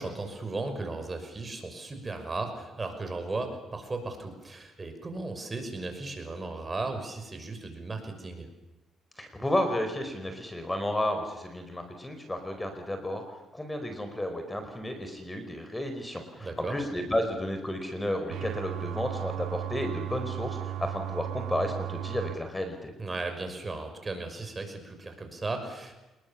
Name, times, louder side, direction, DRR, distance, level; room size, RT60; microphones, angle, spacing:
voice 1, 0.0-8.5 16.4-16.8 23.0-26.0, right 3 dB, 25° right, 6 dB, 6.1 m, -36 dB
voice 2, 9.2-13.2 13.5-22.9, left 1 dB, 15° left, 7 dB, 4.8 m, -32 dB
sound 1, 18.3-22.3, right 12 dB, 80° right, 5.1 m, -35 dB
27.5 x 21.5 x 7.4 m, 1.1 s
cardioid pair, 90°, 0 cm